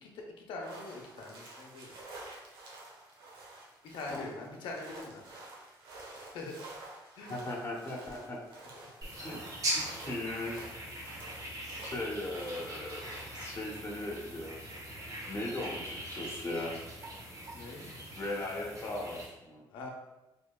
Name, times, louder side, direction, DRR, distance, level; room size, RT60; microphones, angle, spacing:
voice 1, 0.0-2.0 3.8-5.2 6.1-6.5 7.2-7.3 17.5-17.9 19.7-19.9, left 3 dB, 85° left, 0 dB, 0.7 m, -43 dB
sound 1, 0.6-13.3, right 2 dB, 80° right, 0.8 m, -50 dB
voice 2, 4.1-4.4 7.3-8.4 9.2-9.5 9.7-10.7 11.8-14.6 15.3-16.8 18.2-19.6, left 1 dB, 30° left, -3 dB, 0.8 m, -38 dB
sound 2, 9.0-19.3, right 1 dB, 45° right, 1.0 m, -41 dB
4.6 x 2.8 x 2.2 m, 1.0 s
cardioid pair, 85°, 8 cm